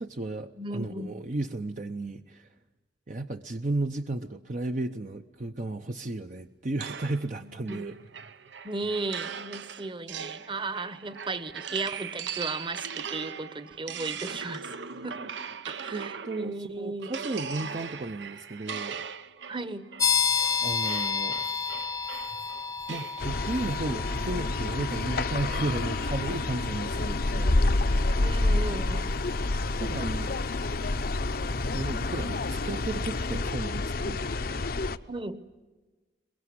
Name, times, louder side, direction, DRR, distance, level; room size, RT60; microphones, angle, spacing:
voice 1, 0.0-2.5 3.1-8.0 15.9-19.1 20.6-21.5 22.9-27.6 29.8-30.4 31.7-34.3, right 2 dB, 45° right, 6 dB, 0.7 m, -34 dB
voice 2, 0.6-1.1 7.4-7.8 8.6-14.7 15.0-15.2 15.7-17.1 19.5-19.9 28.2-29.1 35.1-35.4, right 3 dB, 30° right, 12 dB, 1.1 m, -35 dB
sound 1, 6.8-16.6 17.0-23.2, right 7 dB, 80° right, 1.0 m, -39 dB
sound 2, 20.0-32.5, left 6 dB, 20° left, 0.8 m, -33 dB
sound 3, 23.2-35.0, left 2 dB, 55° left, 0.8 m, -28 dB
23.0 x 22.0 x 9.7 m, 1.2 s
head